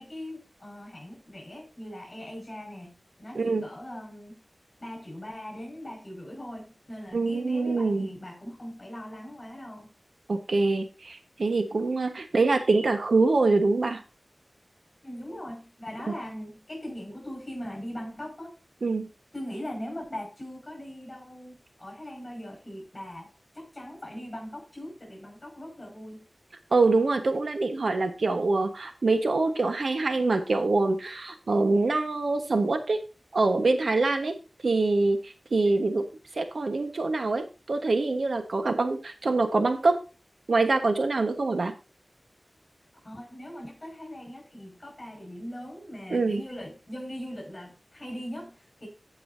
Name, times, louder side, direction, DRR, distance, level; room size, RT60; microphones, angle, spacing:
voice 1, 0.0-4.4 4.8-9.9 15.0-18.5 19.3-26.2 43.0-48.9, equal, 40° left, 5.6 m, -40 dB
voice 2, 7.1-8.1 10.3-14.0 18.8-19.1 26.7-33.0 33.3-34.3 34.6-36.1 36.4-40.0 40.5-41.7 46.1-46.4, right 3 dB, 85° right, 1.3 m, -25 dB
16.0 x 5.5 x 2.7 m
wide cardioid pair, 55°, 0 cm